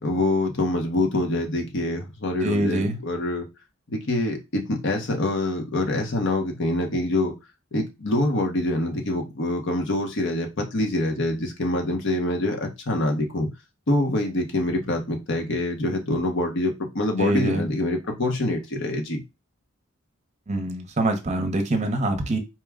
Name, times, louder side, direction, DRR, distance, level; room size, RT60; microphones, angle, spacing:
voice 1, 0.0-3.5 3.9-7.3 7.7-13.5 13.9-19.2, left 1 dB, 60° left, 1.0 m, -25 dB
voice 2, 2.4-3.0 17.2-17.6 20.5-22.4, right 1 dB, 35° right, 0.7 m, -24 dB
4.6 x 2.1 x 3.5 m
head